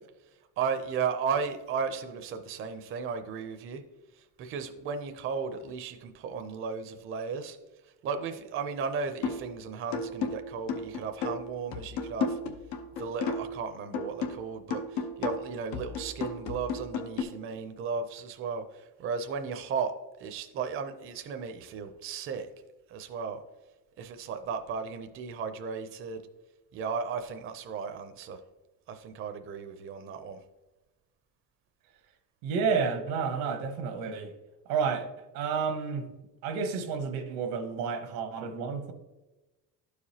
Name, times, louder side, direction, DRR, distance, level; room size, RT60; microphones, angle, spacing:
voice 1, 0.6-3.8 4.2-7.6 8.0-12.4 13.0-19.9 20.2-22.5 22.9-23.4 24.0-26.2 26.7-28.4 28.9-30.4, right 5 dB, 35° right, 0.5 m, -35 dB
sound 1, 9.2-9.5 9.9-13.6 13.9-17.2, left 4 dB, 90° left, 0.9 m, -34 dB
voice 2, 32.4-34.3 34.7-35.1 35.3-36.1 36.4-38.9, right 5 dB, 85° right, 1.1 m, -30 dB
12.0 x 4.9 x 2.8 m
cardioid pair, 150°, 35 cm